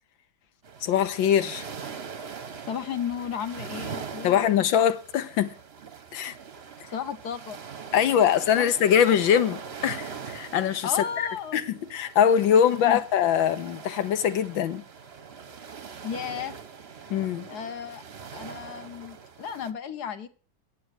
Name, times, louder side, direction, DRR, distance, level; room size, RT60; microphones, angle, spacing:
sound 1, 0.6-19.7, right 6 dB, 45° right, 0.9 m, -42 dB
voice 1, 0.8-1.7 4.2-5.5 6.1-6.4 7.9-10.9 11.5-14.8 17.1-17.5, left 9 dB, 80° left, 1.7 m, -23 dB
voice 2, 2.7-4.5 6.9-7.6 8.5-8.7 10.8-11.6 12.5-13.0 16.0-16.5 17.5-18.0 18.3-20.3, left 8 dB, 60° left, 1.4 m, -34 dB
10.0 x 7.9 x 6.5 m
omnidirectional pair, 2.1 m